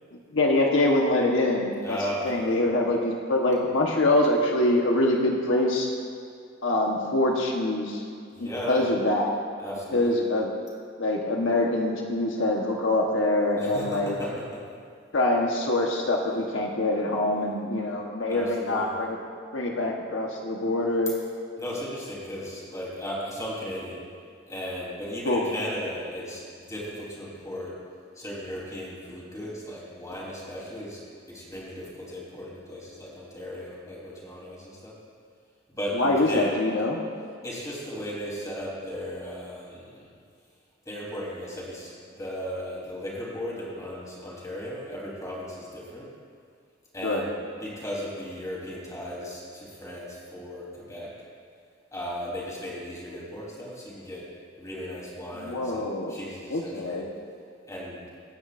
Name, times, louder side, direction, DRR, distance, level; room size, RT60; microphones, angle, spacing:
voice 1, 0.3-2.0 2.2-5.9 6.6-8.0 8.4-9.3 9.9-10.5 11.0-14.1 15.1-19.2 19.5-21.1 25.2-25.4 35.9-37.0 47.0-47.2 55.3-56.2 56.5-57.1, left 1 dB, 80° left, 0 dB, 1.2 m, -24 dB
voice 2, 1.8-2.6 8.3-8.9 9.6-10.1 13.6-14.6 18.3-19.0 21.6-24.0 24.5-26.4 26.7-27.7 28.2-31.0 31.3-34.9 35.7-36.6 37.4-40.1 40.9-46.1 46.9-47.3 47.6-51.1 51.9-54.3 54.6-57.0 57.7-58.0, equal, 15° left, -5 dB, 3.7 m, -36 dB
26.0 x 9.7 x 2.6 m, 2.2 s
head